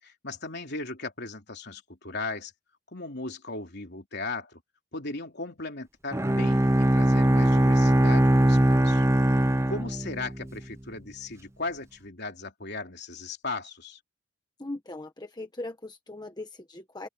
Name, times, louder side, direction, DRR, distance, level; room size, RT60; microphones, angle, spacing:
voice 1, 0.0-2.5 2.9-4.6 4.9-9.1 9.4-14.0, left 3 dB, 55° left, 3.6 m, -37 dB
Bowed string instrument, 6.1-10.5, right 1 dB, 15° right, 0.7 m, -21 dB
voice 2, 14.6-17.1, left 2 dB, 20° left, 1.3 m, -39 dB
open air
head